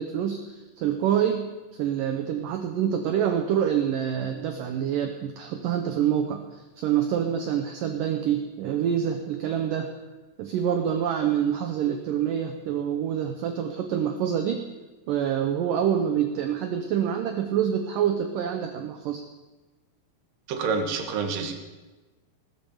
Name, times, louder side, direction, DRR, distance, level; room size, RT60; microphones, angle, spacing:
voice 1, 0.0-9.9 10.4-14.6 15.1-19.2, right 9 dB, 85° right, 5 dB, 1.9 m, -26 dB
voice 2, 20.5-21.5, right 5 dB, 65° right, 4 dB, 2.7 m, -27 dB
18.5 x 7.0 x 7.0 m, 1.2 s
omnidirectional pair, 4.9 m